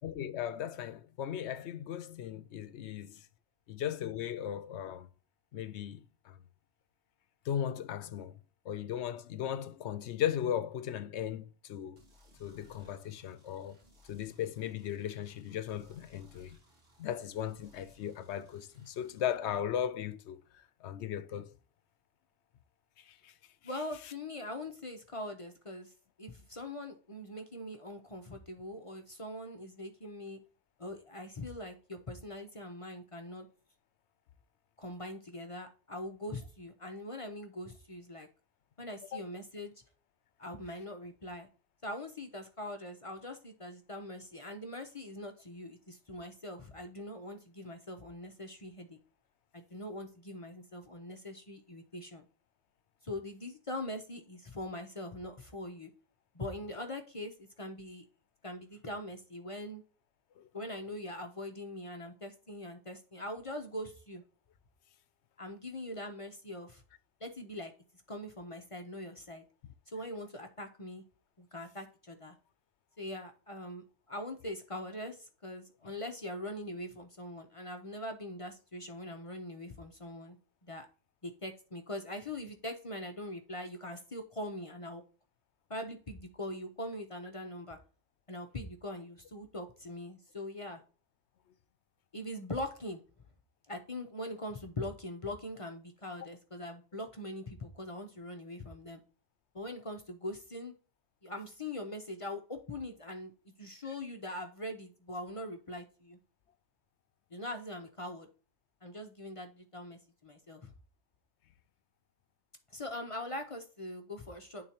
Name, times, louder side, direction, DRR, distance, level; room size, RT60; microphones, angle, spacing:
voice 1, 0.0-3.2 3.7-5.1 5.5-6.4 7.5-8.4 8.7-12.0 12.4-13.8 14.1-16.6 17.0-20.4 20.8-21.5 23.0-23.3 39.1-39.2 60.4-60.5, left 10 dB, 80° left, 0.9 m, -37 dB
sound 1, 12.0-19.3, equal, 60° right, 1.7 m, -64 dB
voice 2, 23.6-25.9 26.2-30.4 30.8-33.5 34.8-38.3 38.8-39.7 40.4-41.5 41.8-49.0 49.5-52.2 53.0-55.9 56.3-58.0 58.4-59.8 60.5-64.2 65.4-66.8 67.2-67.7 68.1-69.4 69.9-71.0 71.4-72.4 73.0-80.4 80.6-80.9 81.2-85.0 85.7-87.8 88.3-90.8 92.1-93.0 93.7-99.0 99.5-100.7 101.2-103.3 103.6-106.2 107.3-108.3 108.8-110.7 112.7-114.7, left 1 dB, 35° left, 0.7 m, -42 dB
10.5 x 3.9 x 2.8 m
omnidirectional pair, 1.2 m